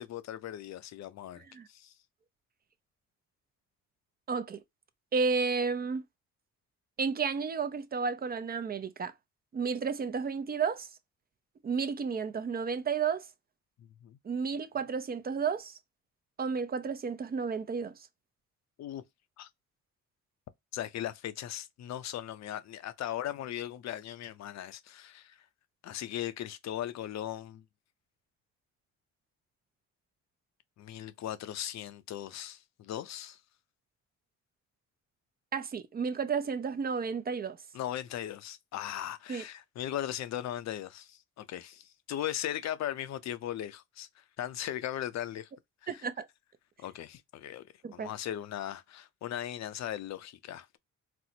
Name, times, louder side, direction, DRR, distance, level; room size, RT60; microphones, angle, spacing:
voice 1, 0.0-1.9 13.8-14.2 18.8-19.0 19.4-19.5 20.7-25.4 25.8-27.6 30.8-33.4 37.7-45.5 45.8-46.0 46.8-47.6 47.9-50.8, left 11 dB, 65° left, 0.5 m, -38 dB
voice 2, 1.4-1.7 4.3-4.6 5.1-6.0 7.0-9.1 9.5-10.9 11.6-13.3 14.2-15.8 16.4-17.9 35.5-37.6 39.3-39.4 45.9-46.3 47.8-48.1, right 5 dB, 30° right, 0.5 m, -32 dB
4.2 x 2.0 x 2.6 m
cardioid pair, 90°, 30 cm